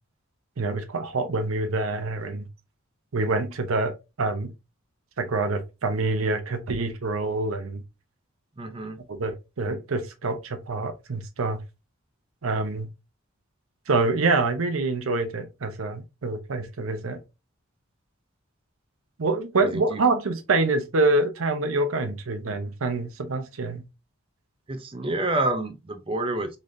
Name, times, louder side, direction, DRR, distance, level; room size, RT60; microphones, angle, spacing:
voice 1, 0.6-2.5 3.1-3.9 4.2-4.5 5.2-7.8 9.1-11.6 12.4-12.9 13.9-17.2 19.2-23.8, right 3 dB, 85° right, 0.7 m, -26 dB
voice 2, 8.6-9.0 19.6-20.0 24.7-26.5, right 2 dB, 25° right, 0.5 m, -28 dB
4.0 x 3.2 x 2.5 m
head